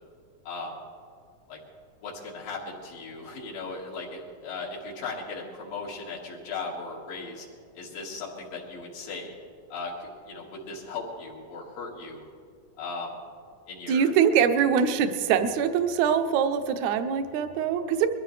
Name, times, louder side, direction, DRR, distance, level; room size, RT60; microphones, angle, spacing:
voice 1, 0.5-0.8 1.5-1.6 2.0-7.5 7.8-9.3 9.7-12.2 12.8-13.2 13.7-14.1, left 3 dB, 80° left, -4 dB, 3.8 m, -37 dB
voice 2, 13.9-18.1, right 7 dB, 75° right, 8 dB, 1.7 m, -23 dB
22.0 x 14.5 x 3.3 m, 2.3 s
omnidirectional pair, 4.0 m